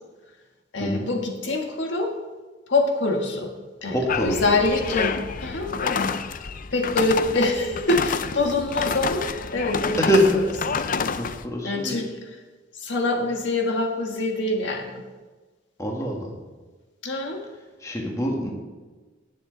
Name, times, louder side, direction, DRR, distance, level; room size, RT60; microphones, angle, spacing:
voice 1, 0.7-2.1 2.7-3.5 3.8-6.1 6.7-9.3 9.5-10.5 11.6-12.4 12.7-15.0 17.0-17.4, left 2 dB, 65° left, 2 dB, 1.6 m, -25 dB
voice 2, 3.9-4.4 10.0-10.3 11.2-12.0 15.8-16.3 17.8-18.5, equal, 15° left, 0 dB, 1.7 m, -24 dB
sound 1, 4.1-11.4, left 5 dB, 45° left, 0.5 m, -28 dB
18.5 x 7.2 x 4.0 m, 1.3 s
head